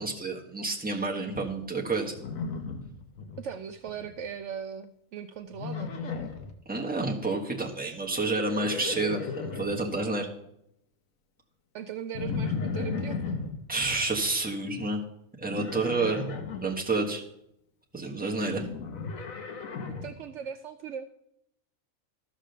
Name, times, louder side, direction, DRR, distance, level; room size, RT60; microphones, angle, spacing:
voice 1, 0.0-2.1 6.7-10.3 13.7-15.0 15.4-17.2 17.9-18.6, right 3 dB, 5° right, -1 dB, 1.3 m, -29 dB
Livestock farm animals working animals, 2.2-3.4 3.7-4.2 5.5-6.5 8.1-9.8 12.1-13.5 15.5-16.6 18.4-20.1, left 5 dB, 90° left, 1.5 m, -35 dB
voice 2, 3.4-5.9 11.7-13.3 18.2-18.4 19.2-19.3 19.9-21.1, right 8 dB, 70° right, 9 dB, 0.8 m, -39 dB
13.0 x 5.0 x 6.6 m, 0.78 s
omnidirectional pair, 1.4 m